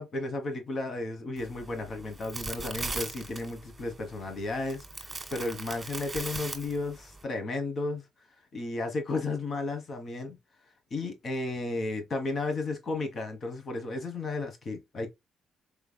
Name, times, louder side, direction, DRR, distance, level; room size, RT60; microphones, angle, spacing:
voice 1, 0.0-8.0 8.5-10.4 10.9-15.1, left 3 dB, 50° left, 1.2 m, -33 dB
sound 1, 1.4-7.2, right 3 dB, 20° right, 1.7 m, -39 dB
4.9 x 3.4 x 2.2 m
cardioid pair, 90°, 0 cm